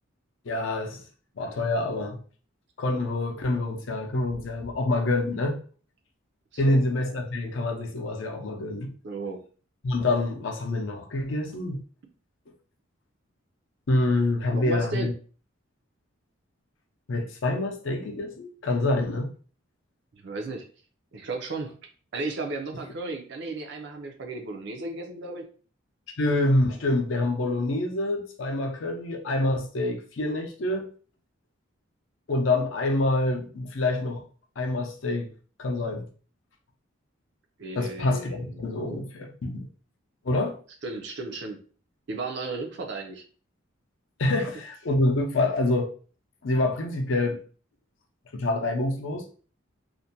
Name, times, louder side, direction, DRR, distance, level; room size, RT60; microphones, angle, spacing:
voice 1, 0.4-1.0 1.4-2.2 2.8-5.6 6.6-8.9 9.8-11.8 13.9-15.1 17.1-19.3 26.2-30.9 32.3-34.2 34.6-35.3 35.6-36.1 37.7-39.7 40.2-40.6 44.2-45.9 46.4-47.4 48.3-49.2, left 2 dB, 65° left, 0.5 m, -26 dB
voice 2, 9.0-9.4 14.5-15.1 20.1-20.6 21.1-21.8 22.1-25.5 37.6-39.0 40.8-41.6 42.1-43.2, right 3 dB, 55° right, 0.5 m, -34 dB
2.5 x 2.1 x 2.7 m
head